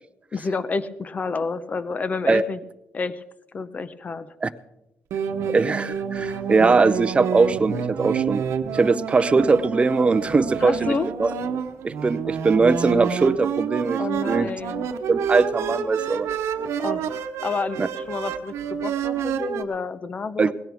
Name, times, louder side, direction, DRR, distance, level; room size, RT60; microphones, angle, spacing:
voice 1, 0.3-2.6 2.9-3.2 3.5-4.5 6.3-6.4 10.6-11.1 14.0-14.9 16.8-20.5, left 4 dB, 35° left, 14 dB, 0.8 m, -29 dB
sound 1, 5.1-19.6, right 8 dB, 90° right, 0.9 m, -28 dB
voice 2, 5.5-8.4 8.7-10.9 11.2-11.3 11.8-14.0 14.3-14.5 15.1-16.3 17.8-17.9 20.4-20.5, right 4 dB, 25° right, 13 dB, 0.7 m, -20 dB
19.5 x 16.5 x 3.5 m, 0.87 s
cardioid pair, 120°, 5 cm